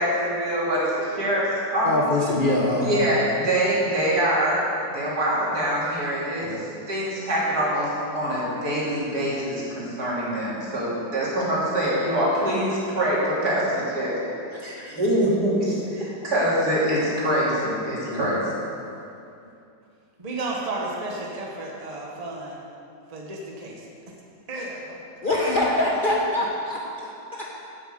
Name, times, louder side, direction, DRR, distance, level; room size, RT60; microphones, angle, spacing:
voice 1, 0.0-2.1 2.8-4.6 4.9-6.5 6.9-14.6 14.9-18.6, equal, 65° right, -7 dB, 3.4 m, -24 dB
voice 2, 1.8-3.0 6.4-6.6 14.6-15.0 18.0-18.4 25.2-27.5, left 1 dB, 35° left, -3 dB, 1.0 m, -25 dB
voice 3, 20.2-22.6 23.1-23.8 24.5-24.9, right 2 dB, 25° right, -2 dB, 1.2 m, -33 dB
8.6 x 7.5 x 7.7 m, 2.6 s
omnidirectional pair, 1.8 m